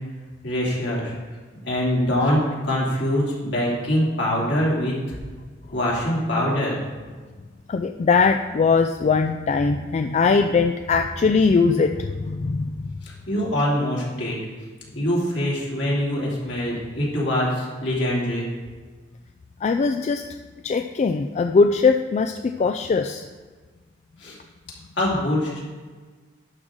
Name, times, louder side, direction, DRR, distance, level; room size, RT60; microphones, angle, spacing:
voice 1, 0.4-1.1 1.6-5.2 5.7-6.8 13.0-14.4 14.9-18.5 24.2-24.4 25.0-25.6, left 1 dB, 70° left, -5 dB, 2.6 m, -24 dB
voice 2, 7.7-12.9 19.6-20.3 20.6-23.3, left 4 dB, 35° left, 6 dB, 0.3 m, -21 dB
11.0 x 6.3 x 3.7 m, 1.4 s
head